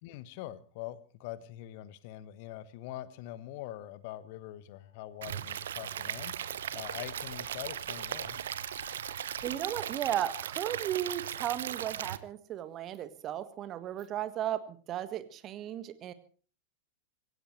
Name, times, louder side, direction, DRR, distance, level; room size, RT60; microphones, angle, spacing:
voice 1, 0.0-8.4, left 14 dB, 50° left, 15 dB, 1.2 m, -44 dB
sound 1, 4.7-9.8, left 4 dB, 75° left, 2.4 m, -54 dB
Stream / Liquid, 5.2-12.2, right 10 dB, 60° right, 0.9 m, -38 dB
voice 2, 9.4-16.1, right 11 dB, 30° right, 11 dB, 1.7 m, -35 dB
26.0 x 16.0 x 3.3 m, 0.41 s
figure-of-eight pair, 90°, 0 cm